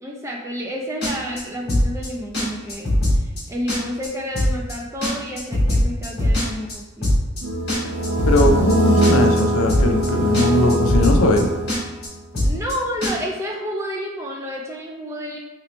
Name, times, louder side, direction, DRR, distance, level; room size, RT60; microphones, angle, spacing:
voice 1, 0.0-7.2 12.4-15.4, equal, 15° right, -1 dB, 0.3 m, -30 dB
sound 1, 1.0-1.4 1.7-2.1 2.3-2.4 2.7-3.4 3.7-4.1 4.3-4.7 5.0-6.7 7.0-7.4 7.7-8.7 9.0-9.4 9.7-10.1 10.3-10.4 10.7-11.4 11.7-12.1 12.3-12.7 13.0-13.1, left 1 dB, 45° left, 1.3 m, -20 dB
sound 2, 7.4-12.1, right 1 dB, 70° right, 0.7 m, -21 dB
voice 2, 8.3-11.5, left 2 dB, 65° left, 3 dB, 0.4 m, -19 dB
3.0 x 2.9 x 3.0 m, 1.0 s
head